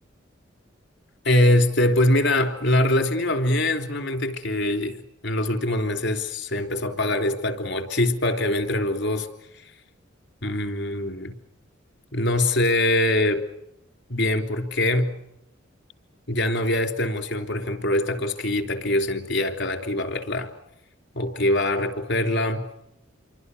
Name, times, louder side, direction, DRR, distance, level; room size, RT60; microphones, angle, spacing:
voice 1, 1.3-9.3 10.4-11.4 12.1-13.4 14.1-15.2 16.3-20.5 21.1-22.7, left 1 dB, 65° left, 7 dB, 3.5 m, -23 dB
28.5 x 24.0 x 6.8 m, 0.84 s
head